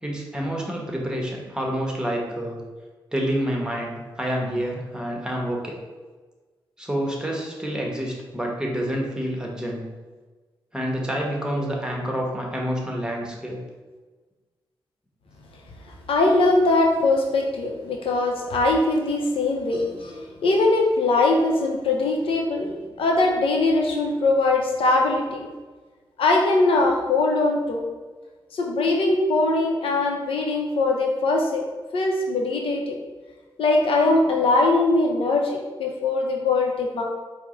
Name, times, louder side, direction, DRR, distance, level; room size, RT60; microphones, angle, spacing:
voice 1, 0.0-2.6 3.1-5.8 6.8-9.8 10.7-13.6, equal, 10° right, -1 dB, 1.0 m, -28 dB
voice 2, 15.9-25.5 26.2-27.8 28.5-31.6 31.9-33.0 33.6-37.0, left 2 dB, 75° left, 1 dB, 0.6 m, -21 dB
4.5 x 2.1 x 3.7 m, 1.3 s
cardioid pair, 55°, 9 cm